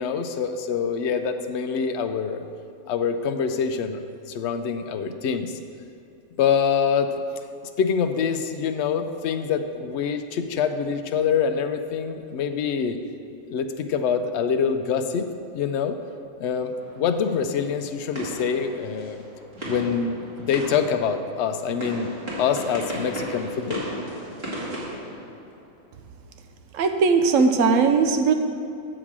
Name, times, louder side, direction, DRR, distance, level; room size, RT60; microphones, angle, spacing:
voice 1, 0.0-2.5 2.9-4.0 4.3-5.6 6.4-7.1 7.8-13.0 13.5-15.3 15.5-16.0 16.4-19.3 19.6-22.1 22.4-23.8, left 6 dB, 65° left, 7 dB, 0.8 m, -25 dB
sound 1, 16.8-25.9, right 1 dB, 45° right, 2.3 m, -36 dB
voice 2, 26.7-28.3, right 5 dB, 70° right, 6 dB, 1.0 m, -19 dB
7.7 x 4.9 x 7.3 m, 2.6 s
omnidirectional pair, 1.4 m